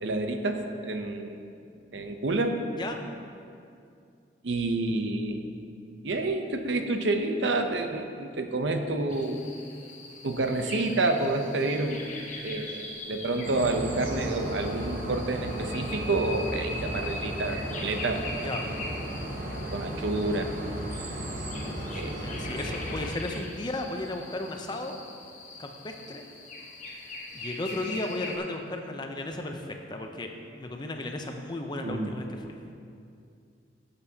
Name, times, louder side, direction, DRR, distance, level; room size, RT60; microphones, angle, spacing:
voice 1, 0.0-1.5 1.9-2.6 4.4-5.4 6.0-9.4 10.2-12.0 12.4-18.2 19.7-20.6 21.9-22.4 31.8-32.1, right 2 dB, 75° right, 6 dB, 0.7 m, -29 dB
sound 1, 9.1-28.4, left 2 dB, 40° left, 1.1 m, -42 dB
sound 2, 13.4-23.1, right 1 dB, 50° right, 1.0 m, -35 dB
voice 2, 21.9-25.0 25.6-26.2 26.9-27.0 27.3-32.5, left 2 dB, 25° left, 4 dB, 0.6 m, -35 dB
13.5 x 6.9 x 2.8 m, 2.4 s
head